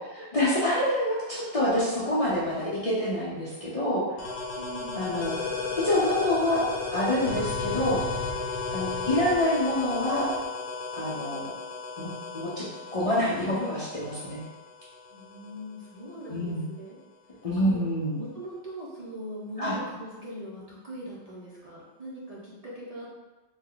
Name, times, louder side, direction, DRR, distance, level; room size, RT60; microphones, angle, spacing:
voice 1, 0.3-4.0 5.0-5.4 5.7-6.6 6.9-8.0 8.7-10.3 10.9-11.5 12.0-12.1 12.3-12.6 12.9-14.4 16.3-16.7 17.4-18.2 19.6-19.8, left 1 dB, 40° left, -8 dB, 0.6 m, -26 dB
sound 1, 4.2-15.6, left 4 dB, 70° left, 0.9 m, -34 dB
voice 2, 4.6-5.4 11.1-11.5 15.1-17.0 17.6-17.8 18.1-23.2, equal, 40° right, -7 dB, 0.7 m, -41 dB
3.1 x 2.2 x 3.7 m, 1.1 s
omnidirectional pair, 1.2 m